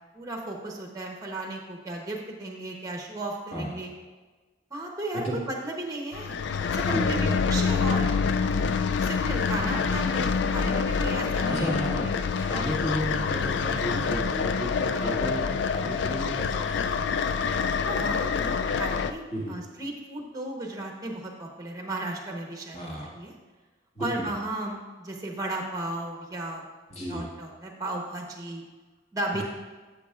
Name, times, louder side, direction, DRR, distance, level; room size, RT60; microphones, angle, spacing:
voice 1, 0.1-3.9 4.7-6.4 6.7-8.1 8.5-11.7 12.0-12.1 14.9-15.3 17.8-23.3 24.0-26.6 27.1-28.6 29.1-29.4, right 2 dB, 15° right, 1 dB, 0.9 m, -35 dB
sound 1, 6.1-19.1, left 5 dB, 60° left, 0.3 m, -26 dB
voice 2, 6.9-7.4 11.5-12.0 12.4-17.5 19.3-19.6 22.7-23.1 24.0-24.3 26.9-27.3, equal, 35° left, -4 dB, 1.8 m, -33 dB
11.5 x 7.1 x 2.4 m, 1.3 s
head